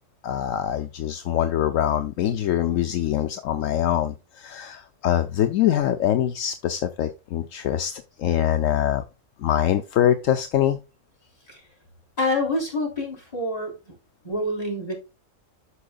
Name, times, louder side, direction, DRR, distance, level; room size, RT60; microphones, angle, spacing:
voice 1, 0.2-9.0 9.4-10.8, left 11 dB, 75° left, 1.0 m, -24 dB
voice 2, 12.2-13.7 14.2-14.9, left 1 dB, 25° left, 4.1 m, -26 dB
13.0 x 4.8 x 2.3 m
omnidirectional pair, 1.4 m